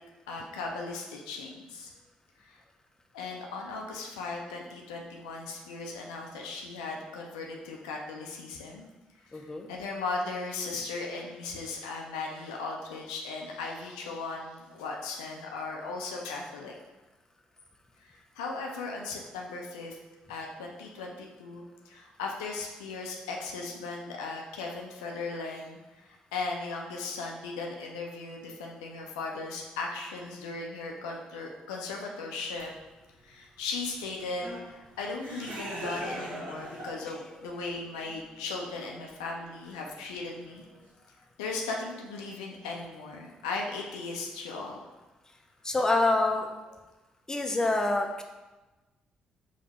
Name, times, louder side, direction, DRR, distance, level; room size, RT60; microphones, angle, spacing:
voice 1, 0.3-1.9 2.4-2.6 3.1-8.9 9.3-16.8 18.0-20.0 20.3-32.7 33.2-40.7 41.4-44.8, left 3 dB, 75° left, 0 dB, 0.4 m, -37 dB
voice 2, 9.3-9.7 45.6-46.5 47.3-48.2, left 2 dB, 15° left, 3 dB, 0.5 m, -26 dB
sound 1, 32.6-32.7 33.3-33.4 34.2-37.2 37.6-40.8, right 1 dB, 60° right, 0.9 m, -42 dB
5.1 x 2.1 x 2.9 m, 1.1 s
figure-of-eight pair, 40°, 3 cm